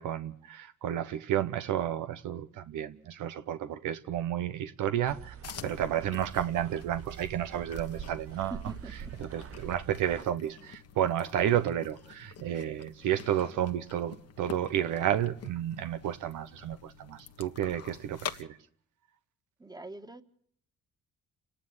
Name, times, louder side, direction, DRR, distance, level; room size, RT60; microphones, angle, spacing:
voice 1, 0.0-5.3 5.6-8.5 9.2-18.6, right 10 dB, 85° right, 1.1 m, -31 dB
sound 1, 5.1-10.2, right 8 dB, 50° right, 1.0 m, -45 dB
sound 2, 5.4-18.4, left 8 dB, 55° left, 1.4 m, -47 dB
voice 2, 8.5-9.1 19.6-20.2, right 3 dB, 15° right, 1.7 m, -43 dB
29.0 x 10.5 x 9.7 m
cardioid pair, 90°, 30 cm